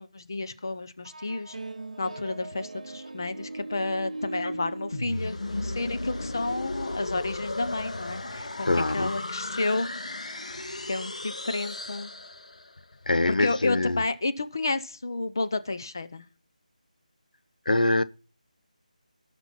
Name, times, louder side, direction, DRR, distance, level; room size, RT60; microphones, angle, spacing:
voice 1, 0.0-1.6 2.0-8.7 8.9-9.9 10.2-12.1 13.4-16.2, left 2 dB, 30° left, 0.8 m, -31 dB
sound 1, 1.0-6.2, right 2 dB, 60° right, 0.7 m, -39 dB
sound 2, 4.9-12.8, left 2 dB, 55° left, 2.0 m, -35 dB
voice 2, 8.6-9.2 13.1-14.0 17.7-18.0, left 2 dB, 85° left, 0.9 m, -24 dB
18.0 x 6.1 x 4.3 m
figure-of-eight pair, 180°, 4 cm